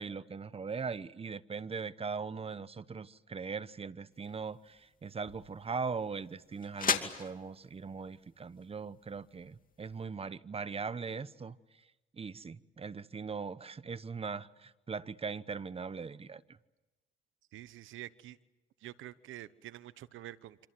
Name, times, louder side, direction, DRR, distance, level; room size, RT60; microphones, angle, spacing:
voice 1, 0.0-11.6 12.1-16.4, right 5 dB, 30° right, 1.0 m, -40 dB
sound 1, 4.1-10.0, left 6 dB, 45° left, 2.6 m, -40 dB
voice 2, 17.5-18.4 18.8-20.7, right 14 dB, 85° right, 1.1 m, -47 dB
27.0 x 26.5 x 7.8 m
cardioid pair, 90°, 20 cm